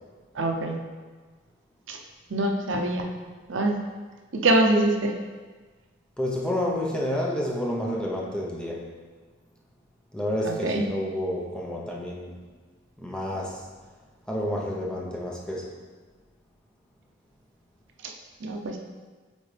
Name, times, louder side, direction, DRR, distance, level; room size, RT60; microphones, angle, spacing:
voice 1, 0.3-0.8 1.9-2.0 2.3-3.1 3.5-3.8 4.3-5.1 10.4-10.8 18.4-18.8, right 2 dB, 75° right, 2 dB, 0.7 m, -24 dB
voice 2, 6.2-8.9 10.1-12.3 13.0-13.6 14.3-15.7, left 1 dB, 5° left, -3 dB, 0.8 m, -29 dB
8.3 x 3.9 x 3.3 m, 1.4 s
head